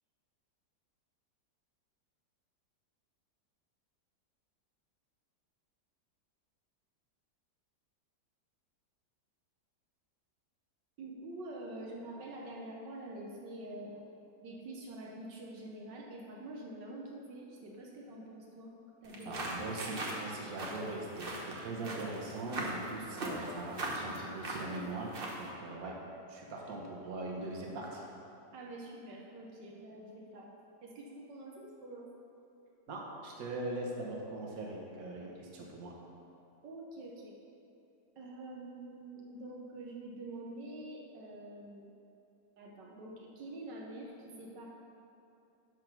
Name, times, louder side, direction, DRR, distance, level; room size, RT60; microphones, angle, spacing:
voice 1, 11.0-14.0 14.4-18.7 19.0-19.5 25.7-25.8 28.5-30.5 30.8-32.1 36.6-37.3 38.2-41.9 42.6-44.7, right 1 dB, 80° right, -2 dB, 1.6 m, -46 dB
sound 1, 19.0-25.5, right 1 dB, 40° right, 1.0 m, -40 dB
voice 2, 19.2-25.9 26.3-28.1 32.9-35.9, right 2 dB, 60° right, -2 dB, 1.5 m, -41 dB
11.0 x 3.8 x 6.0 m, 2.7 s
omnidirectional pair, 1.9 m